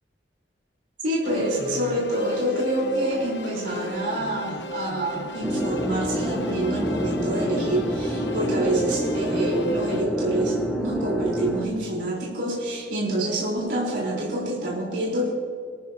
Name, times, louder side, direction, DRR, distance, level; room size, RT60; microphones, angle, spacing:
voice 1, 1.0-15.3, right 1 dB, 85° right, -5 dB, 4.0 m, -27 dB
sound 1, 1.2-10.0, left 1 dB, 85° left, 1.0 m, -36 dB
sound 2, 5.4-11.7, equal, 5° left, 1.2 m, -27 dB
23.5 x 13.5 x 2.8 m, 2.2 s
head